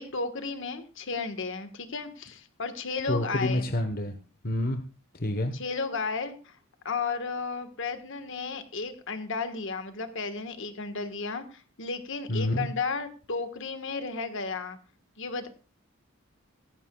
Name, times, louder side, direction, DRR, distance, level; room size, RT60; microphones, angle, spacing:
voice 1, 0.0-3.7 5.5-6.6 6.8-14.8 15.2-15.5, left 4 dB, 60° left, 9 dB, 1.4 m, -33 dB
voice 2, 3.1-4.2 4.4-4.8 5.1-5.5 12.3-12.7, left 1 dB, 45° left, 7 dB, 1.1 m, -28 dB
17.5 x 14.5 x 2.3 m, 0.33 s
head